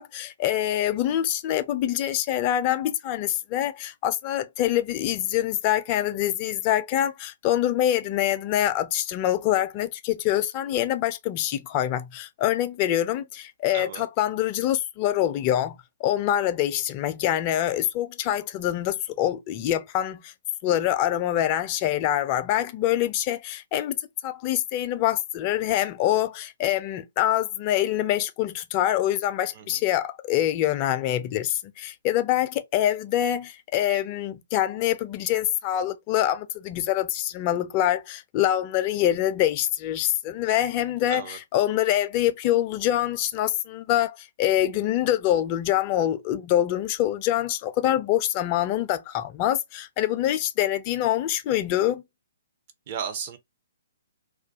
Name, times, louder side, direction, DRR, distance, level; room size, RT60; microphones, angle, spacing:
voice 1, 0.0-20.3 20.6-24.0 24.2-52.0, left 12 dB, 35° left, 0.4 m, -25 dB
voice 2, 13.7-14.1 29.5-29.8 41.1-41.4 52.9-53.4, right 7 dB, 40° right, 0.6 m, -34 dB
2.3 x 2.2 x 2.5 m
figure-of-eight pair, 125°, 0 cm